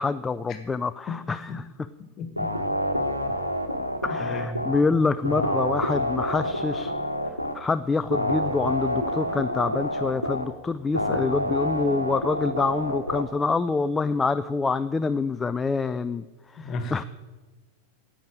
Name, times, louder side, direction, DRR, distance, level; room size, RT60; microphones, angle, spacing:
voice 1, 0.0-1.7 4.0-6.9 7.5-16.3 16.5-17.0, left 4 dB, 15° left, 13 dB, 0.4 m, -26 dB
voice 2, 1.1-1.6 2.2-2.5 4.2-4.5 4.8-4.9 5.3-5.4 16.6-17.1, left 3 dB, 30° left, 7 dB, 1.7 m, -34 dB
sound 1, 2.4-4.8 5.2-7.5 8.1-10.4 10.9-13.2, equal, 90° left, 1.2 m, -28 dB
10.5 x 8.6 x 8.8 m, 1.2 s
figure-of-eight pair, 90°, 0 cm